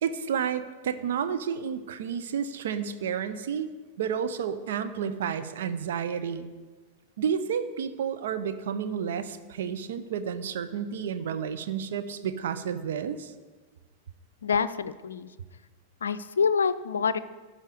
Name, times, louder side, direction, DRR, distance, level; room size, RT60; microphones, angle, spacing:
voice 1, 0.0-3.7 4.0-6.5 7.2-13.3, right 7 dB, 60° right, 10 dB, 0.7 m, -31 dB
voice 2, 14.4-15.3 16.0-17.2, left 6 dB, 70° left, 12 dB, 0.4 m, -26 dB
13.0 x 5.0 x 8.5 m, 1.3 s
figure-of-eight pair, 90°, 0 cm